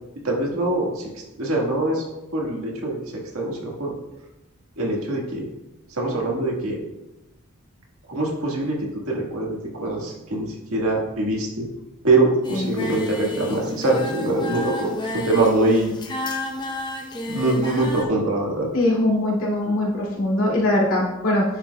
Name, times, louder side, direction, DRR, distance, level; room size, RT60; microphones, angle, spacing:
voice 1, 0.2-1.1 1.4-2.0 2.3-3.0 3.3-3.9 4.8-5.4 5.9-6.8 8.1-8.8 9.1-11.7 12.0-15.9 17.3-18.7, right 2 dB, 70° right, -2 dB, 1.7 m, -23 dB
Singing, 12.4-18.0, left 2 dB, 20° left, 0.8 m, -31 dB
voice 2, 18.7-21.4, left 1 dB, 65° left, -4 dB, 2.5 m, -21 dB
10.0 x 5.9 x 2.3 m, 0.99 s
head